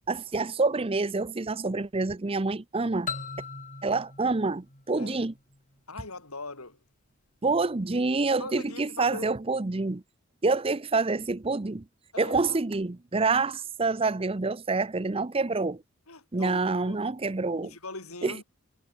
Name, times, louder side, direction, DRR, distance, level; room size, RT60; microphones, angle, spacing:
voice 1, 0.1-3.1 3.8-5.3 7.4-10.0 10.4-11.8 12.2-15.8 16.3-17.7 18.2-18.4, right 3 dB, 25° right, 0.6 m, -27 dB
sound 1, 3.1-5.8, left 5 dB, 35° left, 6.4 m, -39 dB
voice 2, 5.9-6.8 8.4-9.4 12.1-12.6 13.4-13.5 16.1-17.0 17.6-18.4, left 3 dB, 80° left, 6.2 m, -41 dB
head